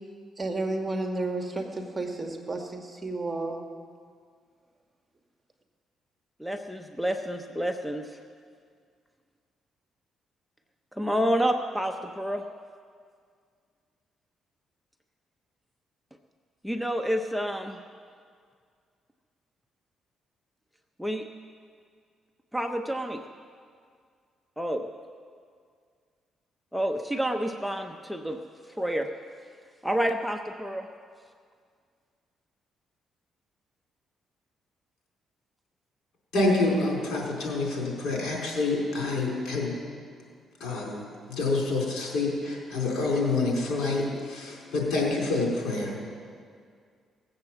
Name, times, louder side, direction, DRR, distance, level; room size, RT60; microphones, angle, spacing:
voice 1, 0.4-3.6, right 2 dB, 20° right, 3 dB, 1.6 m, -32 dB
voice 2, 6.4-8.1 10.9-12.4 16.6-17.8 21.0-21.2 22.5-23.2 24.6-24.8 26.7-28.4 28.8-29.1 29.8-30.9, equal, ahead, 4 dB, 0.7 m, -29 dB
voice 3, 36.3-39.7 40.6-41.0 41.3-45.9, left 3 dB, 75° left, -2 dB, 4.1 m, -27 dB
18.0 x 7.8 x 7.3 m, 2.1 s
cardioid pair, 90°, 0 cm